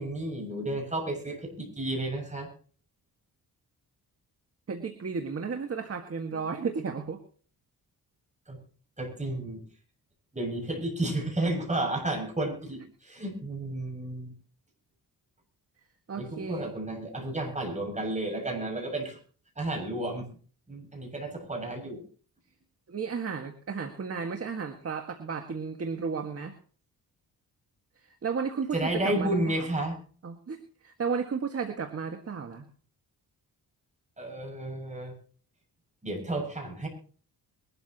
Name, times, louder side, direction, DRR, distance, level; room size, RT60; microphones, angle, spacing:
voice 1, 0.0-2.5 6.3-6.4 8.5-8.6 9.0-9.6 10.3-14.3 16.2-19.2 19.6-20.3 20.7-22.0 28.7-30.0 34.2-35.1 36.0-36.9, right 1 dB, 20° right, 3 dB, 6.9 m, -32 dB
voice 2, 4.7-7.2 16.1-16.7 22.9-26.5 28.2-29.7 30.2-32.7, right 5 dB, 40° right, 6 dB, 1.7 m, -33 dB
22.0 x 13.0 x 2.9 m, 0.43 s
cardioid pair, 90°, 37 cm